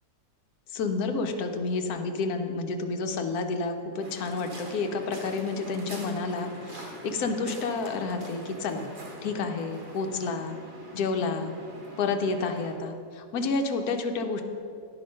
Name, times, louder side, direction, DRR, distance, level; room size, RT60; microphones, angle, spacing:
voice 1, 0.7-8.9 9.2-10.6 10.9-11.5 12.0-14.4, left 4 dB, 70° left, 5 dB, 1.1 m, -30 dB
Waves surf, 4.0-12.8, right 2 dB, 55° right, 1.7 m, -44 dB
9.9 x 5.0 x 5.3 m, 2.5 s
omnidirectional pair, 1.8 m